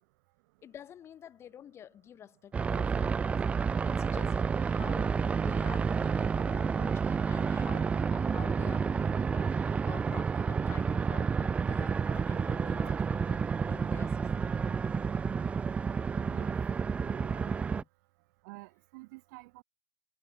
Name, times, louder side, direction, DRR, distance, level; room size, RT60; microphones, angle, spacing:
voice 1, 0.6-3.4 3.8-13.4 13.7-14.5 17.8-17.9, left 10 dB, 20° left, 1.3 m, -50 dB
sound 1, 2.5-17.8, right 5 dB, 10° right, 0.4 m, -30 dB
voice 2, 16.3-16.6 17.0-17.6 18.4-19.6, right 24 dB, 50° right, 2.7 m, -51 dB
supercardioid pair, 145°, 12 cm